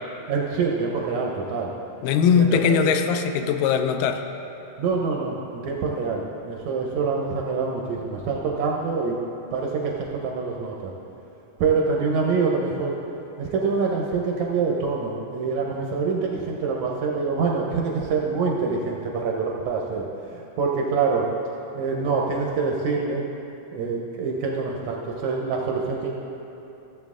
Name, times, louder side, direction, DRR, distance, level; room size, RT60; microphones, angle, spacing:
voice 1, 0.3-1.7 2.3-2.8 4.8-9.2 9.5-10.9 11.6-13.0 13.4-21.3 21.8-23.2 23.7-26.1, right 4 dB, 75° right, -1 dB, 1.8 m, -25 dB
voice 2, 2.0-4.2, left 6 dB, 85° left, 7 dB, 2.1 m, -20 dB
14.5 x 7.5 x 3.6 m, 2.9 s
omnidirectional pair, 3.9 m